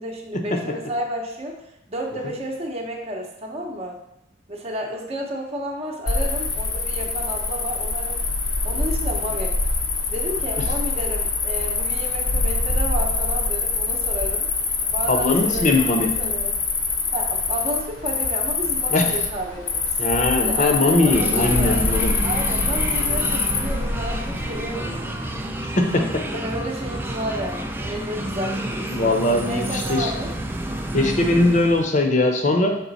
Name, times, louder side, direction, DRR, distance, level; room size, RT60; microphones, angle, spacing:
voice 1, 0.0-1.6 1.9-4.0 4.5-8.2 8.6-9.6 10.1-14.5 14.9-15.9 16.2-16.5 17.1-19.9 20.3-21.8 22.2-25.1 26.3-30.3, equal, 30° right, 0 dB, 0.8 m, -31 dB
Cricket, 6.1-25.0, left 4 dB, 75° left, 0.9 m, -24 dB
voice 2, 15.1-16.1 18.9-19.1 20.0-22.2 25.7-26.0 28.9-30.1 30.9-32.7, left 2 dB, 40° left, 4 dB, 0.8 m, -20 dB
sound 1, 21.1-32.0, right 1 dB, 10° right, 0.4 m, -30 dB
6.1 x 3.9 x 4.0 m, 0.82 s
head